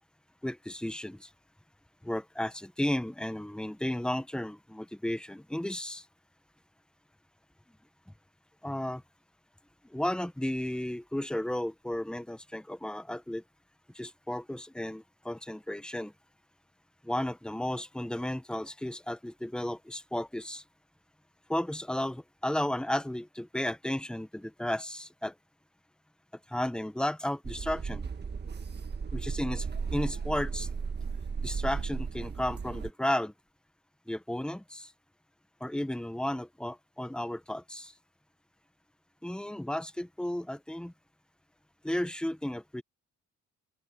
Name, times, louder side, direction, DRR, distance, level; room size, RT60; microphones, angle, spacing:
voice 1, 0.4-1.3 2.0-6.0 8.6-9.0 9.9-13.4 13.9-16.1 17.0-20.6 21.5-25.3 26.5-28.0 29.1-29.7 29.9-30.7 31.4-33.3 34.1-34.9 35.6-37.9 39.2-40.9 41.8-42.8, left 1 dB, 5° left, 1.2 m, -33 dB
sound 1, 27.4-32.9, right 5 dB, 35° right, 1.7 m, -35 dB
open air
cardioid pair, 90°, 30 cm